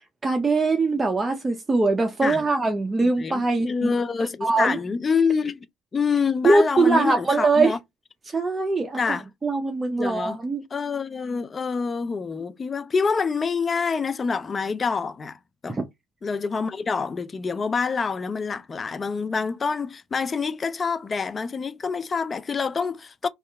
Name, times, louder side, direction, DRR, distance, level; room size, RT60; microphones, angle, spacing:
voice 1, 0.2-3.9 4.4-4.8 6.4-7.8 8.3-10.6 15.7-15.8, right 3 dB, 20° right, 0.5 m, -22 dB
voice 2, 3.0-5.7 5.9-7.8 9.0-9.2 10.0-10.4 10.7-15.4 15.6-15.8 16.2-23.3, left 5 dB, 30° left, 0.4 m, -26 dB
2.7 x 2.4 x 3.2 m
supercardioid pair, 80°, 0 cm